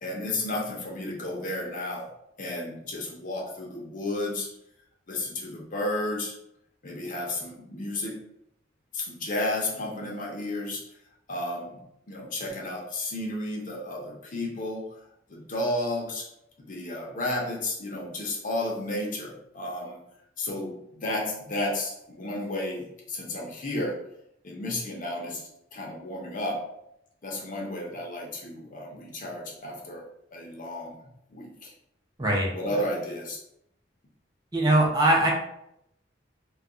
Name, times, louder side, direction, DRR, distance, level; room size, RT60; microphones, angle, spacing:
voice 1, 0.0-2.1 2.4-4.5 5.1-6.3 6.8-8.2 8.9-10.8 11.3-11.8 12.1-14.9 15.3-16.3 16.6-20.0 20.4-24.0 24.4-26.7 27.2-30.0 30.3-31.7 32.5-33.4, left 1 dB, 45° left, -2 dB, 0.6 m, -32 dB
voice 2, 32.2-32.5 34.5-35.3, right 1 dB, 20° right, -2 dB, 0.6 m, -21 dB
2.2 x 2.2 x 3.7 m, 0.78 s
head